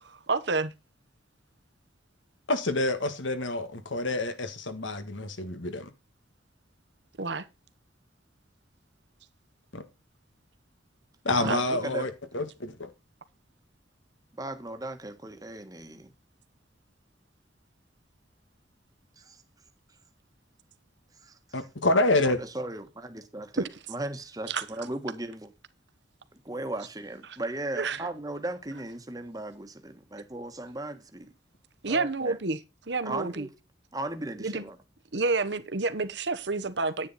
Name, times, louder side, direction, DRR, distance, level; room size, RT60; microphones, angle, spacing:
voice 1, 0.0-0.7 7.2-7.5 11.4-11.6 24.5-24.6 27.8-28.0 31.8-32.6 32.9-33.5 34.4-34.6 35.1-37.1, right 3 dB, 65° right, 1.1 m, -29 dB
voice 2, 2.5-5.9 9.7-9.8 11.3-12.9 21.5-22.4, left 2 dB, 85° left, 1.7 m, -27 dB
voice 3, 11.3-12.1 14.4-16.1 19.2-19.4 21.1-21.7 22.2-25.5 26.3-31.3 31.9-32.4 33.0-33.5 33.9-34.8, right 2 dB, 20° right, 1.4 m, -37 dB
9.9 x 9.5 x 4.2 m
head